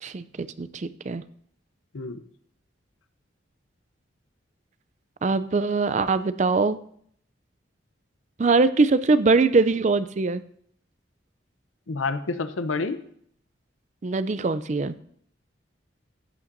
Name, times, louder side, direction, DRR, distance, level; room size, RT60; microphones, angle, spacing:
voice 1, 0.0-1.2 5.2-6.8 8.4-10.4 14.0-15.0, right 3 dB, 35° right, 14 dB, 0.4 m, -22 dB
voice 2, 11.9-13.0, left 3 dB, 90° left, 11 dB, 0.7 m, -28 dB
15.0 x 8.7 x 2.6 m, 0.63 s
head